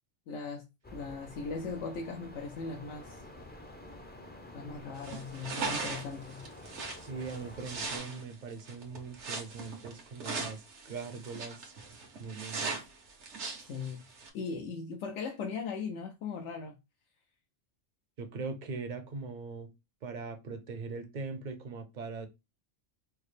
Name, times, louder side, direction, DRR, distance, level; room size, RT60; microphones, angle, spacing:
voice 1, 0.3-0.7 0.9-3.2 4.5-6.5 12.7-12.8 13.7-14.0 14.3-16.8, left 4 dB, 85° left, 0.9 m, -39 dB
sound 1, 0.8-8.0, left 1 dB, 15° left, 0.3 m, -49 dB
sound 2, 5.0-14.3, right 4 dB, 80° right, 1.1 m, -39 dB
voice 2, 7.0-11.7 12.2-12.8 18.2-19.7 20.0-22.3, right 4 dB, 50° right, 0.6 m, -41 dB
4.5 x 2.0 x 3.2 m
omnidirectional pair, 1.2 m